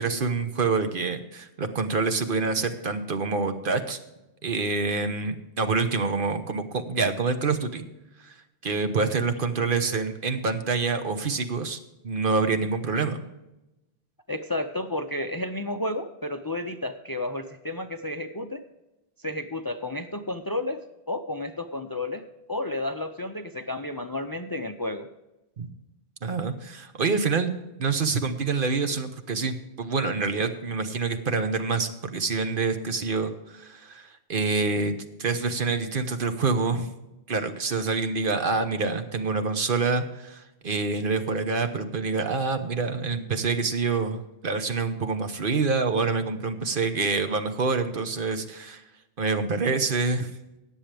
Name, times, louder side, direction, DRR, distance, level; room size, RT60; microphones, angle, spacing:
voice 1, 0.0-4.0 4.4-7.8 8.2-8.3 8.6-11.8 12.0-13.2 25.6-25.7 26.2-27.5 27.8-36.9 37.3-48.8 49.2-50.3, right 4 dB, 60° right, 8 dB, 1.1 m, -26 dB
voice 2, 14.3-18.6 19.2-20.8 21.1-25.1, left 1 dB, 30° left, 8 dB, 0.5 m, -32 dB
18.0 x 7.3 x 3.4 m, 0.96 s
omnidirectional pair, 1.0 m